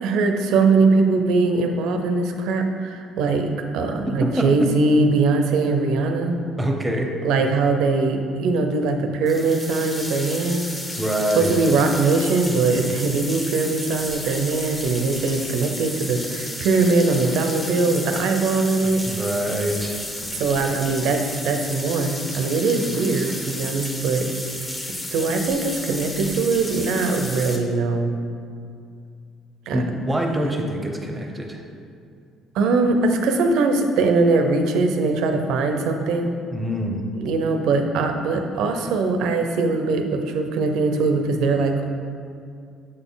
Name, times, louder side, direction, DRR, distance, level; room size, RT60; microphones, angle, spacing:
voice 1, 0.0-6.4 7.2-10.7 11.4-19.0 20.3-24.3 25.1-28.1 29.7-29.8 32.5-36.3 37.2-41.9, right 3 dB, 75° right, 5 dB, 0.6 m, -21 dB
voice 2, 4.1-4.7 6.6-7.1 11.0-11.5 18.8-20.0 29.7-31.6 36.5-37.0, equal, 10° right, 2 dB, 0.8 m, -25 dB
sound 1, 9.3-27.6, left 1 dB, 15° left, 0.9 m, -33 dB
7.6 x 4.0 x 3.9 m, 2.3 s
cardioid pair, 105°, 0 cm